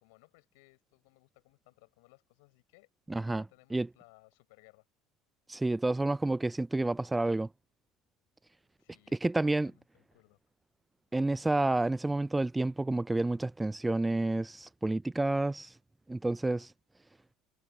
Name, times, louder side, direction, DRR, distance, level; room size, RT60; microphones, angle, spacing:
voice 1, 0.0-2.9 3.3-4.9 8.8-10.4, left 28 dB, 65° left, 7.7 m, -62 dB
voice 2, 3.1-3.4 3.7-3.9 5.5-7.5 9.2-9.7 11.1-15.7 16.1-16.7, right 2 dB, 10° right, 0.3 m, -29 dB
figure-of-eight pair, 65°, 0 cm